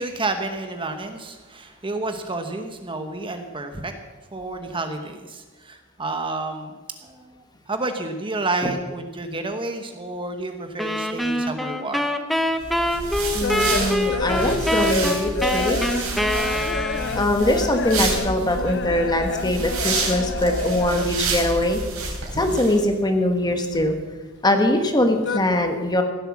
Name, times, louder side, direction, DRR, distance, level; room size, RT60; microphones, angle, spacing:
voice 1, 0.0-3.9 4.3-6.7 7.0-12.1, right 2 dB, 25° right, 6 dB, 1.0 m, -30 dB
sound 1, 10.8-17.4, equal, ahead, 0.7 m, -25 dB
sound 2, 12.5-21.3 21.6-22.8 23.1-24.5 24.7-25.4, left 4 dB, 55° left, 0.7 m, -30 dB
sound 3, 12.6-22.8, right 3 dB, 85° right, 3.8 m, -29 dB
voice 2, 13.3-15.8 17.1-21.8 22.3-24.0 24.4-26.0, left 1 dB, 20° left, 5 dB, 1.4 m, -22 dB
16.0 x 7.8 x 7.2 m, 1.3 s
head